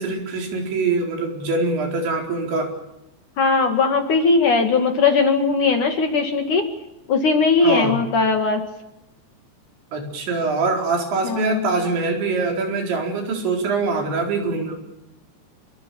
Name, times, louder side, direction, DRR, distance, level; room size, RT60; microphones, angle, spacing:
voice 1, 0.0-2.7 7.6-8.0 9.9-14.8, right 3 dB, 75° right, 2 dB, 6.7 m, -23 dB
voice 2, 3.4-6.7 7.1-8.6 11.2-11.6, left 4 dB, 50° left, 5 dB, 3.0 m, -19 dB
28.0 x 22.5 x 7.1 m, 0.91 s
omnidirectional pair, 5.3 m